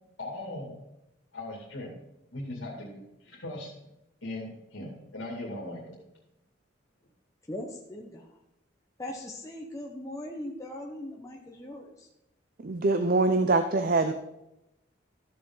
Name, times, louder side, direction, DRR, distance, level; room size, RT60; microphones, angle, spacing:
voice 1, 0.2-0.8 1.3-2.0 2.3-3.7 4.2-6.0, left 1 dB, 85° left, 2.4 m, -39 dB
voice 2, 7.5-8.4 9.0-12.1, left 1 dB, 15° left, 1.0 m, -40 dB
voice 3, 12.6-14.1, right 3 dB, 50° right, 0.5 m, -24 dB
13.5 x 7.0 x 3.9 m
head